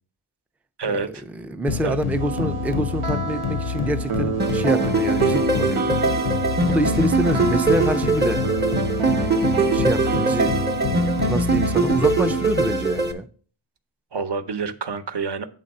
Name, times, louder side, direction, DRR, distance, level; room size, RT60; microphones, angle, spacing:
voice 1, 0.8-1.2 1.8-2.0 14.1-15.5, right 5 dB, 55° right, 0.8 m, -27 dB
voice 2, 1.3-6.0 6.7-8.5 9.0-10.6 11.3-13.3, right 1 dB, 5° right, 0.3 m, -26 dB
sound 1, 1.7-13.2, left 8 dB, 90° left, 0.6 m, -29 dB
sound 2, 2.2-11.4, right 5 dB, 85° right, 0.8 m, -28 dB
sound 3, 4.4-13.1, right 3 dB, 20° right, 0.7 m, -22 dB
8.5 x 3.8 x 5.3 m
wide cardioid pair, 90°, 49 cm